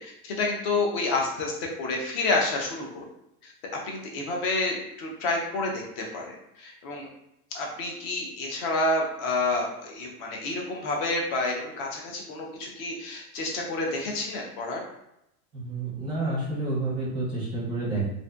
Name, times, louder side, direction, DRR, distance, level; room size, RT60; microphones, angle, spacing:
voice 1, 0.0-3.1 3.4-3.5 3.8-7.1 7.5-14.8, left 2 dB, 40° left, 0 dB, 0.5 m, -29 dB
voice 2, 15.5-18.1, right 2 dB, 10° right, -6 dB, 0.6 m, -29 dB
2.5 x 2.5 x 2.2 m, 0.82 s
supercardioid pair, 165°, 45 cm